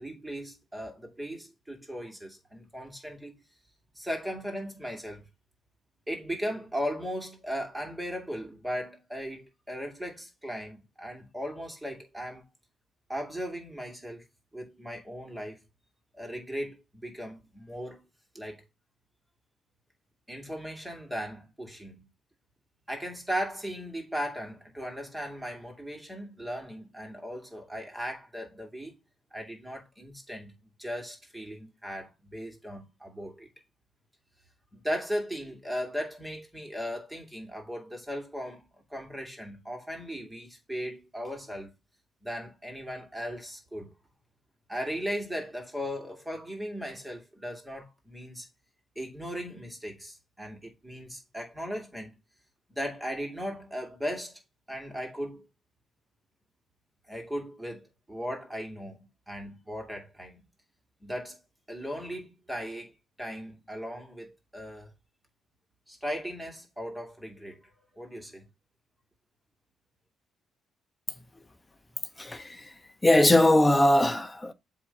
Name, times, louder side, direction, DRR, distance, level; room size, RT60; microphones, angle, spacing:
voice 1, 0.0-3.3 4.0-5.3 6.1-12.5 13.1-14.2 14.5-15.6 16.1-16.8 17.0-18.0 18.3-18.6 20.3-22.1 22.9-29.0 29.3-30.5 30.8-33.5 34.7-38.6 38.9-41.7 42.2-43.9 44.7-48.5 49.0-52.1 52.7-54.4 54.7-55.4 57.1-59.0 59.3-60.4 61.0-61.4 61.7-64.9 65.9-68.4, equal, 10° right, 2.5 m, -37 dB
voice 2, 72.2-72.7 73.0-74.5, left 1 dB, 15° left, 1.0 m, -21 dB
7.7 x 3.0 x 5.6 m
cardioid pair, 90°, 0 cm